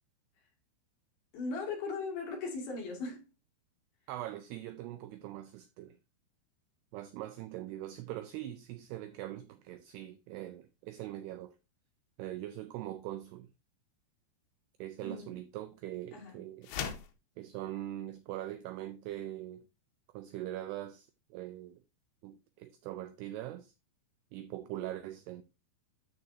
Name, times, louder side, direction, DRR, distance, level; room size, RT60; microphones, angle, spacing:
voice 1, 1.3-3.3 15.0-15.4 16.1-16.4, left 3 dB, 55° left, 3.9 m, -38 dB
voice 2, 4.1-6.0 6.9-11.6 12.2-13.5 14.8-16.7 17.4-19.7 20.1-21.8 22.2-23.7 24.3-25.4, right 14 dB, 90° right, 2.3 m, -42 dB
sound 1, 16.6-17.2, left 7 dB, 75° left, 3.1 m, -37 dB
13.0 x 4.8 x 2.7 m
omnidirectional pair, 5.4 m